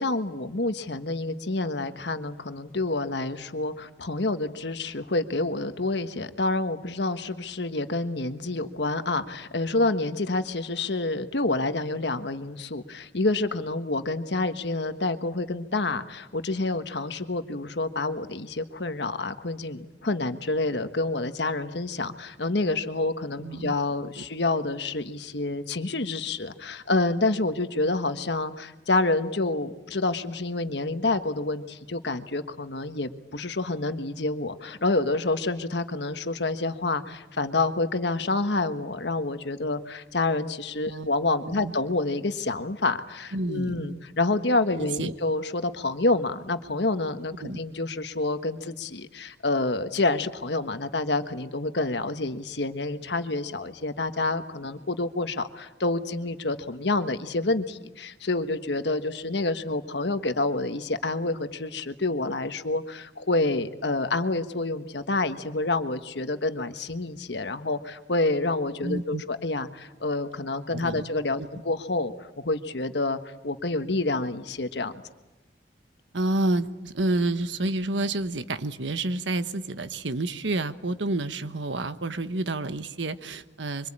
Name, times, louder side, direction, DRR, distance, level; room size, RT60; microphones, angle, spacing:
voice 1, 0.0-74.9, left 2 dB, 65° left, 9 dB, 1.4 m, -28 dB
voice 2, 23.4-23.7 24.2-24.3 40.9-41.1 41.4-41.7 43.3-44.0 44.8-45.1 47.4-47.6 68.8-69.2 70.7-71.0 71.4-71.5 76.1-83.9, right 2 dB, 80° right, 11 dB, 1.2 m, -29 dB
25.0 x 24.5 x 8.8 m, 1.0 s
head